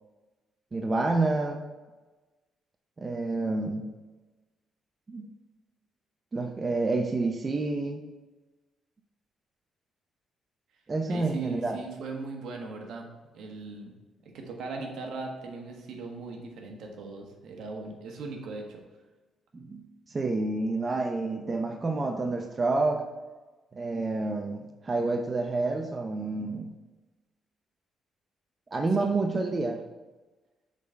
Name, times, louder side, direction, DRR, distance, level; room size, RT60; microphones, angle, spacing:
voice 1, 0.7-1.6 3.0-3.9 5.1-5.2 6.3-8.0 10.9-11.8 19.5-23.0 23.7-26.7 28.7-29.8, right 3 dB, 30° right, 4 dB, 0.5 m, -29 dB
voice 2, 11.1-13.1 13.3-13.9 14.2-18.8 29.0-29.1, right 3 dB, 75° right, 2 dB, 1.2 m, -38 dB
7.3 x 3.9 x 4.3 m, 1.2 s
cardioid pair, 90°, 0 cm